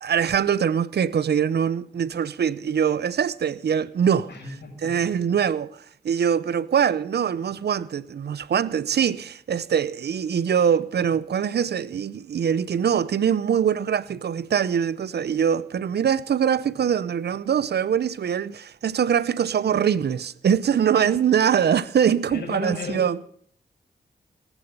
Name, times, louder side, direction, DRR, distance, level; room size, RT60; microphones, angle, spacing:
voice 1, 0.0-4.3 4.8-23.2, right 8 dB, 70° right, 0.7 m, -23 dB
voice 2, 4.3-4.9 20.9-21.1 22.3-23.0, left 2 dB, 90° left, 6.4 m, -33 dB
18.0 x 10.0 x 5.3 m
cardioid pair, 60°, 17 cm